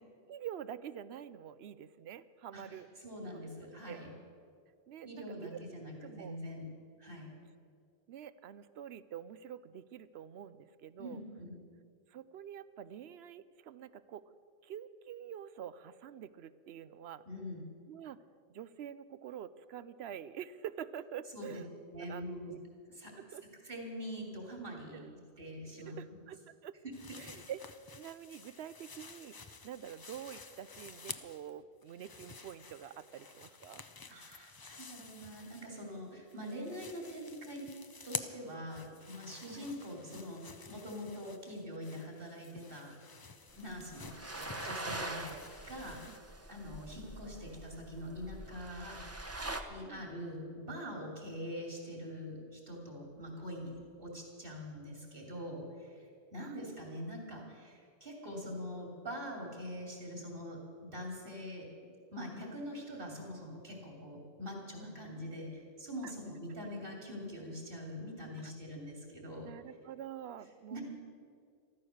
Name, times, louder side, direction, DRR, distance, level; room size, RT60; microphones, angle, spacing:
voice 1, 0.3-2.9 3.9-4.0 4.9-5.6 6.0-6.4 8.1-11.2 12.1-14.2 14.6-17.2 17.9-18.2 18.5-21.7 22.0-22.6 23.2-23.4 24.9-25.1 25.8-26.7 27.2-33.9 39.5-39.7 43.6-43.8 46.0-46.2 49.8-50.1 54.0-54.1 56.4-57.0 66.0-66.1 69.4-70.8, right 9 dB, 80° right, 15 dB, 0.9 m, -47 dB
voice 2, 2.5-4.1 5.0-6.6 7.0-7.3 11.0-11.6 17.3-17.6 21.3-21.6 21.9-22.5 23.0-23.1 23.6-25.0 25.4-26.2 34.1-37.7 38.0-42.9 43.5-45.3 45.7-46.1 46.5-49.0 49.7-56.0 56.3-61.7 62.1-69.5 70.7-70.8, equal, 60° right, 0 dB, 3.2 m, -44 dB
sound 1, 26.9-31.5 31.8-36.0 36.3-46.2, left 4 dB, 30° left, 0.5 m, -50 dB
sound 2, 43.6-49.6, right 2 dB, 15° right, 0.8 m, -44 dB
14.0 x 13.5 x 6.5 m, 2.2 s
omnidirectional pair, 1.1 m